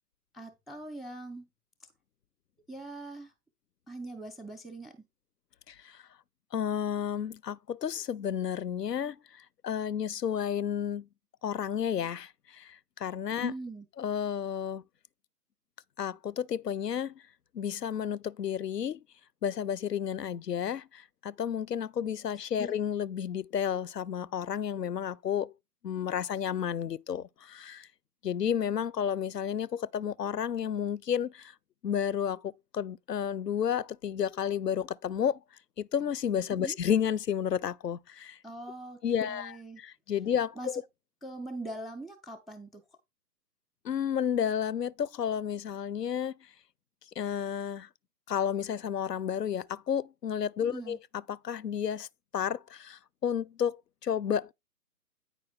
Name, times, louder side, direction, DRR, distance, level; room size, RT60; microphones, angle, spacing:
voice 1, 0.3-1.5 2.7-3.3 3.9-5.0 13.4-13.8 22.6-22.7 36.6-36.8 38.4-39.8 40.6-40.8 41.2-42.8 50.7-51.0, right 2 dB, ahead, 0.4 m, -42 dB
voice 2, 5.7-6.0 6.5-11.1 11.4-13.5 14.0-14.8 16.0-17.1 17.5-19.0 19.4-25.5 25.8-27.9 28.2-31.5 31.8-35.4 35.8-38.4 39.0-40.8 43.8-46.3 47.2-47.9 48.3-51.0 51.3-52.1 52.3-54.5, left 8 dB, 80° left, 0.5 m, -31 dB
8.9 x 4.9 x 3.6 m
figure-of-eight pair, 135°, 48 cm